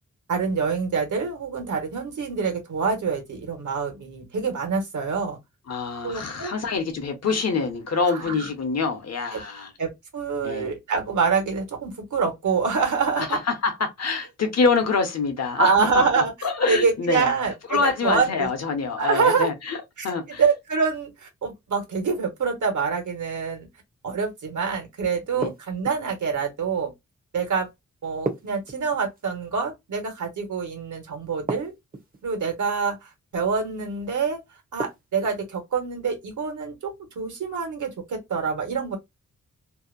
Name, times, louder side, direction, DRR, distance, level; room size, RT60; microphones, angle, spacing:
voice 1, 0.3-5.4 6.0-6.5 8.1-8.5 9.3-9.4 9.8-13.3 15.6-16.3 16.7-18.5 19.0-19.5 20.0-20.1 20.4-23.7 24.0-26.9 27.3-27.7 28.0-31.7 32.2-34.4 34.7-39.0, right 5 dB, 75° right, 1.2 m, -26 dB
voice 2, 5.7-9.7 10.4-10.7 13.2-15.9 16.2-17.3 17.7-19.8 20.0-20.4 25.3-25.5, left 4 dB, 60° left, 0.8 m, -25 dB
sound 1, 25.4-26.2 28.3-29.3 31.5-32.2 34.8-35.4, right 3 dB, 30° right, 0.6 m, -33 dB
2.7 x 2.1 x 2.4 m
wide cardioid pair, 165°, 30 cm